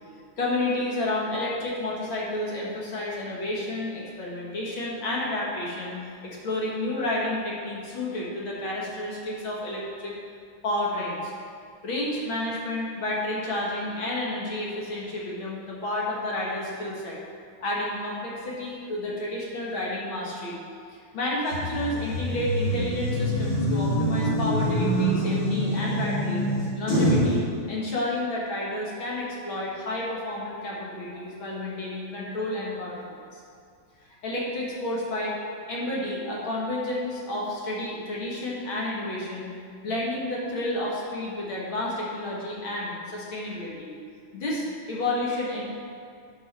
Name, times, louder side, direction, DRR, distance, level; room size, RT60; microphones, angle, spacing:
voice 1, 0.4-6.0 6.2-10.1 10.6-11.3 11.8-17.2 17.6-20.6 20.9-26.4 26.7-33.4 34.0-35.4 35.7-39.5 39.8-43.9 44.3-45.6, left 1 dB, 65° left, -5 dB, 2.3 m, -30 dB
sound 1, 21.5-27.3, equal, 35° left, 2.5 m, -25 dB
10.5 x 5.6 x 4.2 m, 2.3 s
omnidirectional pair, 2.4 m